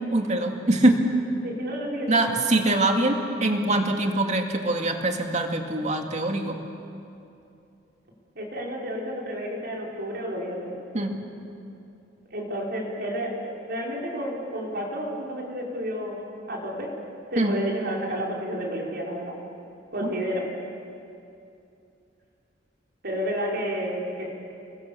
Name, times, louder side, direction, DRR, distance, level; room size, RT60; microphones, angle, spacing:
voice 1, 0.1-1.0 2.1-6.6 10.9-11.2 17.4-17.6 20.0-20.1, right 2 dB, 40° right, 3 dB, 2.3 m, -23 dB
voice 2, 1.4-2.2 8.4-10.7 12.3-16.2 16.5-16.9 17.3-19.3 19.9-20.4 23.0-24.3, equal, 55° right, -2 dB, 5.2 m, -31 dB
30.0 x 22.5 x 7.1 m, 2.7 s
head